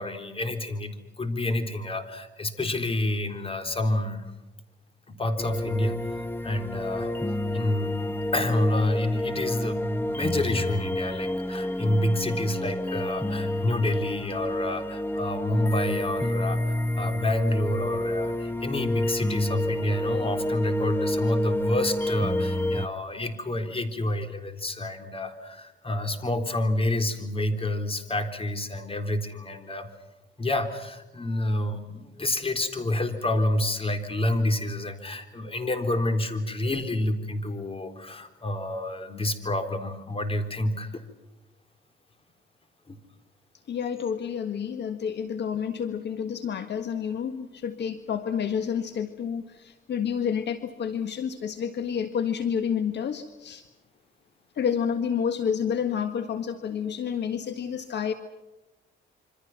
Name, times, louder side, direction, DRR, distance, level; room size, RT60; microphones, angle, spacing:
voice 1, 0.0-4.2 5.1-7.1 7.5-8.0 8.3-29.9 30.4-41.0 42.9-43.0, left 1 dB, 30° left, 8 dB, 4.0 m, -28 dB
sound 1, 5.4-22.9, left 1 dB, 10° left, 1.1 m, -29 dB
voice 2, 43.7-53.6 54.5-58.1, left 7 dB, 60° left, 9 dB, 1.7 m, -29 dB
27.0 x 25.5 x 6.0 m, 1.1 s
cardioid pair, 90°, 20 cm